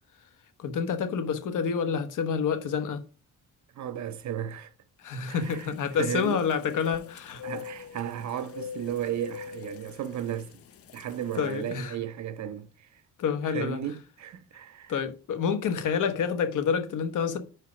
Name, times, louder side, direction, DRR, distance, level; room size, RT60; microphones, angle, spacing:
voice 1, 0.6-3.0 5.0-7.4 11.3-12.0 13.2-13.8 14.9-17.4, left 6 dB, 65° left, 1.0 m, -28 dB
voice 2, 3.8-4.7 5.3-5.7 6.0-6.4 7.4-10.6 10.9-13.0 13.5-14.9, right 10 dB, 55° right, 0.7 m, -34 dB
sound 1, 5.1-11.8, left 8 dB, 45° left, 0.5 m, -45 dB
4.9 x 4.5 x 4.7 m
cardioid pair, 105°, 33 cm